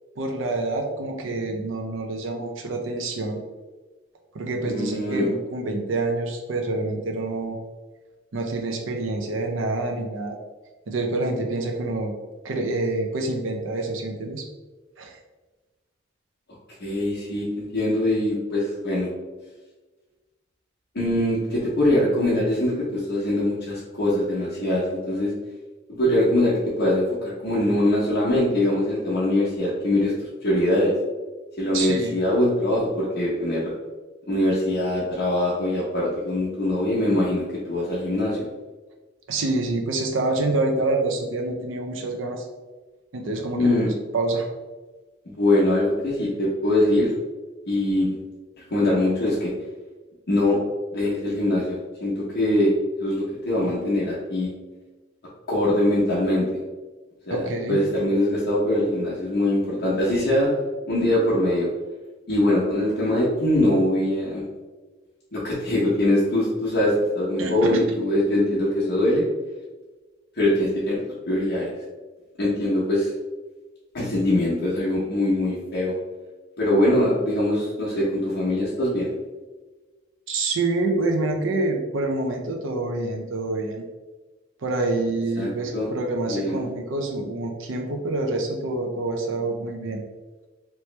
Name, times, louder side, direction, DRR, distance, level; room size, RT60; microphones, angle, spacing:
voice 1, 0.2-3.4 4.3-7.6 8.3-10.4 10.9-12.1 12.4-14.4 15.0-15.2 31.7-32.1 39.3-42.5 43.1-44.5 57.3-57.8 67.4-67.8 80.3-83.8 84.6-90.0, right 2 dB, 75° right, 2 dB, 0.5 m, -27 dB
voice 2, 4.6-5.3 16.8-19.1 20.9-25.3 25.9-30.1 30.4-30.9 31.6-33.7 34.3-38.4 43.6-43.9 45.3-47.1 47.7-48.2 48.7-49.5 50.3-50.6 50.9-52.7 53.0-54.5 55.5-56.5 57.3-60.5 60.9-61.7 62.3-64.4 65.3-69.2 70.4-71.0 71.3-71.7 72.4-73.1 73.9-75.9 76.6-79.1 85.4-85.9 86.3-86.6, left 1 dB, 55° left, -8 dB, 0.9 m, -22 dB
3.0 x 3.0 x 3.2 m, 1.3 s
head